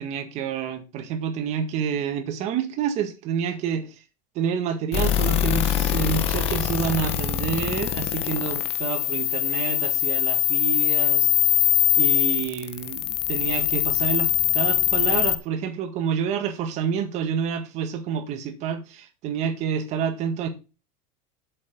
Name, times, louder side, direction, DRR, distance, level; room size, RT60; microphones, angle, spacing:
voice 1, 0.0-4.0 4.4-11.3 12.0-20.5, right 7 dB, 40° right, 1.8 m, -28 dB
sound 1, 4.9-15.4, left 11 dB, 35° left, 1.2 m, -23 dB
8.4 x 7.7 x 3.8 m
supercardioid pair, 155°, 17 cm